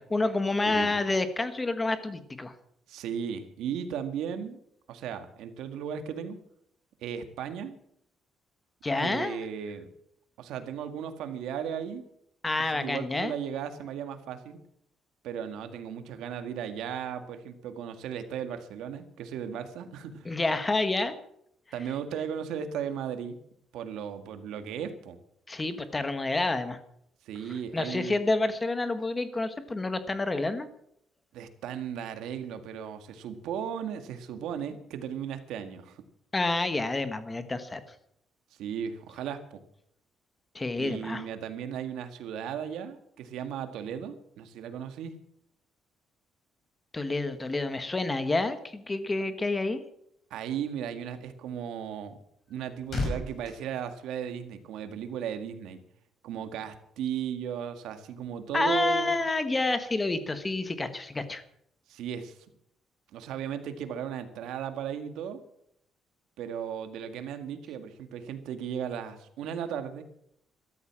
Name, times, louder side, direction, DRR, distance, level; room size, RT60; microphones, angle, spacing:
voice 1, 0.0-2.5 8.8-9.4 12.4-13.3 20.2-21.1 25.5-26.8 27.7-30.7 36.3-37.8 40.5-41.2 46.9-49.8 58.5-61.4, left 2 dB, 15° left, 10 dB, 1.3 m, -28 dB
voice 2, 0.7-1.0 2.9-4.6 4.9-6.4 7.0-7.8 9.0-9.9 10.4-12.0 12.7-14.6 15.2-20.3 21.7-23.4 23.7-25.2 27.3-28.2 31.3-36.0 38.6-39.6 40.8-45.2 50.3-52.2 52.5-55.8 56.2-59.2 61.9-62.4 63.1-65.4 66.4-70.0, right 8 dB, 85° right, 8 dB, 1.9 m, -36 dB
sound 1, 52.3-54.8 55.1-55.4, left 2 dB, 35° left, 5.5 m, -36 dB
14.0 x 13.0 x 7.5 m, 0.72 s
cardioid pair, 170°, 0 cm